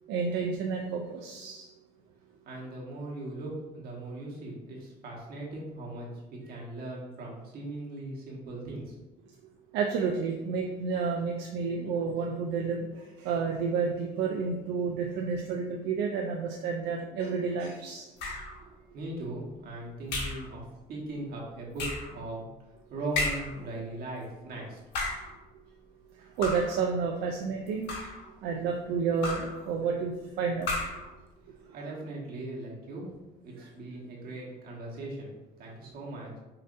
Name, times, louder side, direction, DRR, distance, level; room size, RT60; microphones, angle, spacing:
voice 1, 0.1-1.7 9.7-18.1 26.2-27.9 28.4-30.7 31.9-32.0 33.6-33.7, right 5 dB, 85° right, 2 dB, 0.4 m, -30 dB
voice 2, 2.4-9.0 18.9-22.5 22.9-24.8 31.5-33.0 33.4-35.3 35.6-36.4, right 2 dB, 65° right, -3 dB, 1.2 m, -39 dB
sound 1, 18.2-18.6 20.1-20.5 21.8-22.1 23.1-23.6 24.8-25.3 26.4-26.8 27.7-28.3 29.2-29.6 30.6-31.1, left 2 dB, 80° left, 1.1 m, -33 dB
5.5 x 2.6 x 2.6 m, 1.0 s
cardioid pair, 110°, 17 cm